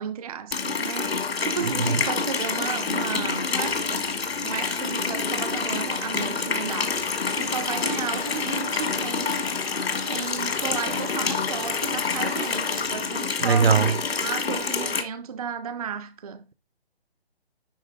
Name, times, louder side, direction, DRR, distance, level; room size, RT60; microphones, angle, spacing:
voice 1, 0.0-4.1 4.4-9.4 10.0-16.5, right 7 dB, 35° right, 0.6 m, -34 dB
Water tap faucet, 0.5-15.0, left 5 dB, 75° left, 1.7 m, -27 dB
voice 2, 1.6-2.0 13.4-14.0, right 6 dB, 70° right, 1.0 m, -21 dB
sound 1, 7.2-12.8, left 7 dB, 35° left, 0.7 m, -40 dB
11.0 x 4.0 x 3.9 m
hypercardioid pair, 155°, 31 cm